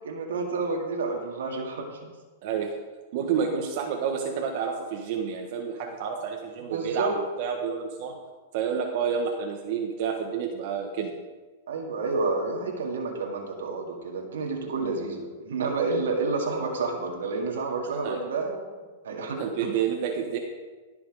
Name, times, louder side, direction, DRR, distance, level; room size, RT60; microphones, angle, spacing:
voice 1, 0.0-2.1 6.7-7.1 11.7-18.7 19.0-19.4, right 3 dB, 85° right, 0 dB, 2.0 m, -29 dB
voice 2, 2.4-2.7 3.1-7.1 7.4-8.1 8.5-11.2 18.0-18.2 19.4-20.4, right 7 dB, 55° right, 1 dB, 1.4 m, -29 dB
17.5 x 6.1 x 5.0 m, 1.3 s
hypercardioid pair, 135°, 0 cm